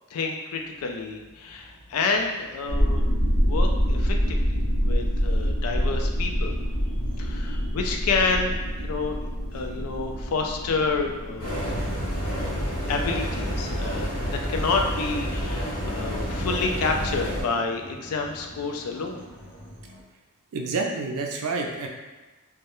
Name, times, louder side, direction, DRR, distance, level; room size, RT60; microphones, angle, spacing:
voice 1, 0.1-3.0 3.4-6.5 7.2-9.2 9.5-11.8 12.3-12.6 12.9-19.2, left 4 dB, 70° left, 3 dB, 0.3 m, -29 dB
sound 1, 0.5-20.0, equal, 35° left, 0.7 m, -46 dB
sound 2, 2.7-16.0, equal, ahead, 0.7 m, -27 dB
sound 3, 11.4-17.4, equal, 90° left, 0.8 m, -29 dB
voice 2, 20.5-21.9, right 3 dB, 65° right, 1 dB, 0.4 m, -28 dB
2.2 x 2.0 x 2.9 m, 1.2 s
head